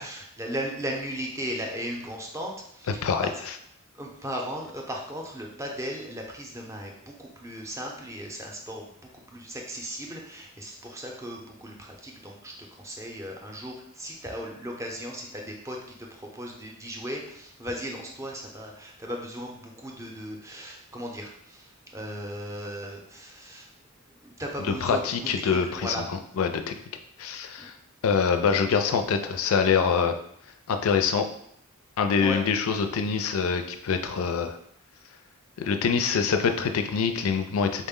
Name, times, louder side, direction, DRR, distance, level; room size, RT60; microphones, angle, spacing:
voice 1, 0.0-3.4 3.9-23.7 24.1-26.0 27.6-27.7 32.2-32.4, equal, 15° right, 0 dB, 0.5 m, -37 dB
voice 2, 24.7-26.0 26.4-26.7 27.2-27.8 28.0-30.1 30.7-31.3 32.0-34.6 35.6-37.9, left 6 dB, 70° left, 7 dB, 0.4 m, -25 dB
4.1 x 2.1 x 3.6 m, 0.70 s
head